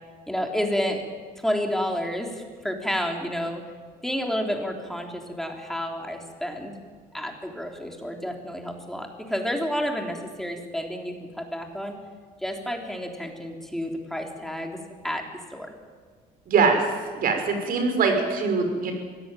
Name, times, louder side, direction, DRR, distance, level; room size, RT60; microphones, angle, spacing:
voice 1, 0.3-1.0 1.4-3.6 4.0-6.7 7.1-12.0 12.4-14.8 15.0-15.2 15.5-15.7, equal, ahead, 2 dB, 3.7 m, -30 dB
voice 2, 16.5-16.8 17.1-18.9, right 5 dB, 60° right, 5 dB, 5.9 m, -22 dB
23.5 x 17.5 x 9.3 m, 1.6 s
cardioid pair, 110°, 17 cm